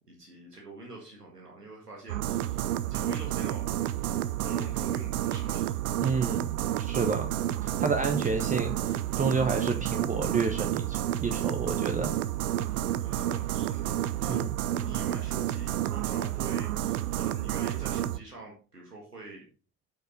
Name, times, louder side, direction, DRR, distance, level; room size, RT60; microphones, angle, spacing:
voice 1, 0.1-2.6 2.9-3.7 4.4-5.8 7.0-7.2 13.0-14.4 14.8-19.4, right 2 dB, 90° right, -1 dB, 1.8 m, -45 dB
sound 1, 2.1-18.2, right 12 dB, 75° right, 0.6 m, -30 dB
voice 2, 6.0-7.3 7.6-12.1 14.3-14.5, right 4 dB, 15° right, 5 dB, 0.9 m, -30 dB
8.6 x 5.8 x 4.0 m, 0.38 s
figure-of-eight pair, 65°, 46 cm